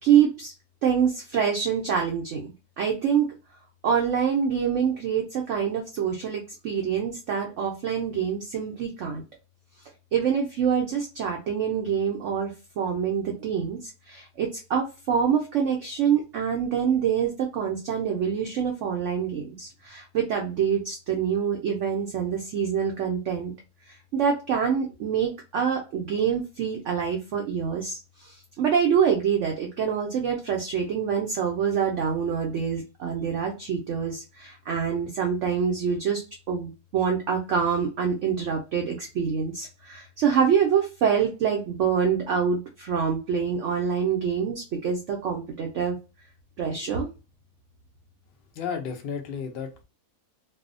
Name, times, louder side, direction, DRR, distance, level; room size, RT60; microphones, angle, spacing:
voice 1, 0.0-0.5 0.8-3.3 3.8-9.2 10.1-23.5 24.1-46.0 46.6-47.1, right 7 dB, 70° right, 1 dB, 0.7 m, -26 dB
voice 2, 48.6-49.8, left 6 dB, 85° left, 4 dB, 0.5 m, -33 dB
2.7 x 2.0 x 2.4 m, 0.29 s
omnidirectional pair, 1.7 m